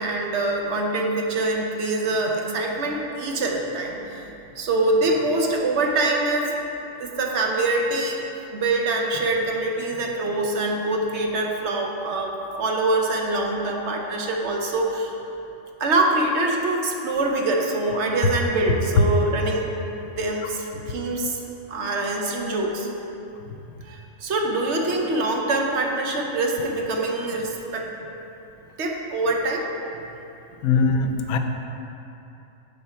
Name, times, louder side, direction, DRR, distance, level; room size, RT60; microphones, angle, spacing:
voice 1, 0.0-6.5 7.0-8.2 8.5-15.1 15.8-19.7 20.2-21.4 21.7-22.9 23.8-27.9 28.8-29.6, right 2 dB, 55° right, 1 dB, 1.0 m, -24 dB
voice 2, 20.4-20.8 23.5-23.6 30.6-31.4, left 4 dB, 80° left, 6 dB, 1.0 m, -23 dB
9.7 x 4.0 x 4.4 m, 2.9 s
omnidirectional pair, 1.5 m